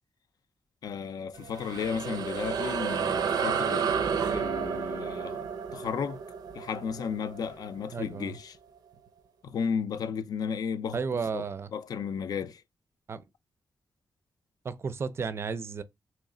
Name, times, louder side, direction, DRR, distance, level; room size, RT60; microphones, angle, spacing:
voice 1, 0.8-3.9 4.3-5.5 5.7-6.2 6.6-8.6 9.4-11.0 11.3-11.4 11.7-12.6, left 6 dB, 75° left, 0.4 m, -33 dB
sound 1, 1.3-8.2, right 6 dB, 90° right, 0.5 m, -31 dB
voice 2, 7.9-8.4 10.9-11.7 13.1-13.2 14.6-15.8, right 5 dB, 40° right, 0.4 m, -33 dB
3.1 x 3.1 x 3.7 m
wide cardioid pair, 150°, 7 cm